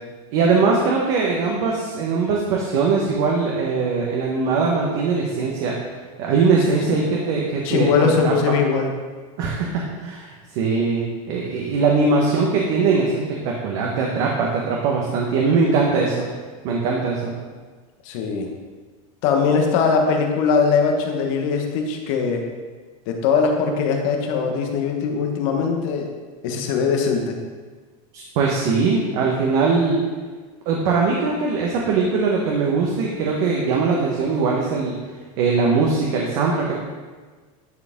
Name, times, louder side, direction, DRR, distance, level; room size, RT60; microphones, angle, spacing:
voice 1, 0.3-5.8 6.2-8.5 9.4-16.3 16.6-17.3 28.1-30.0 30.7-35.0 35.4-36.7, right 4 dB, 60° right, -2 dB, 1.2 m, -21 dB
voice 2, 7.6-8.9 18.0-18.5 19.2-22.5 23.1-26.1 26.4-27.4, left 5 dB, 60° left, 3 dB, 1.4 m, -21 dB
10.5 x 4.9 x 3.6 m, 1.4 s
supercardioid pair, 140°, 19 cm